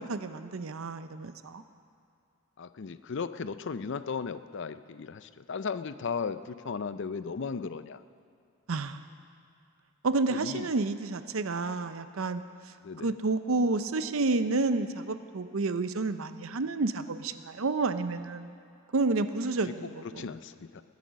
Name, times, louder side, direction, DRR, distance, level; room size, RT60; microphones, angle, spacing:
voice 1, 0.0-1.6 8.7-9.0 10.0-12.4 13.0-18.5 18.9-20.2, right 3 dB, 70° right, 11 dB, 0.6 m, -30 dB
voice 2, 2.6-8.0 10.3-10.7 12.8-13.1 19.6-20.8, left 5 dB, 55° left, 13 dB, 0.5 m, -36 dB
21.0 x 8.4 x 6.3 m, 2.5 s
head